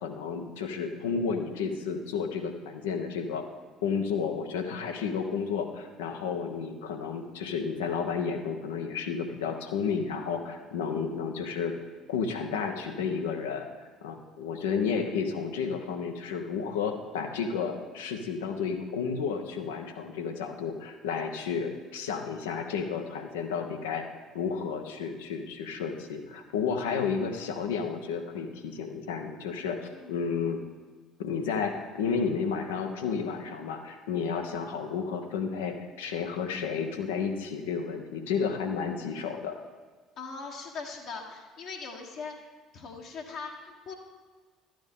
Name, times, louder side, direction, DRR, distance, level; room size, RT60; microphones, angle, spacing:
voice 1, 0.0-3.5 3.8-11.7 12.1-13.7 14.0-24.0 24.3-29.8 30.1-30.6 31.2-39.6, left 6 dB, 75° left, 5 dB, 0.9 m, -32 dB
voice 2, 40.2-42.3 42.7-43.9, left 4 dB, 55° left, 0 dB, 1.3 m, -40 dB
12.5 x 8.9 x 3.7 m, 1.5 s
figure-of-eight pair, 55°, 0 cm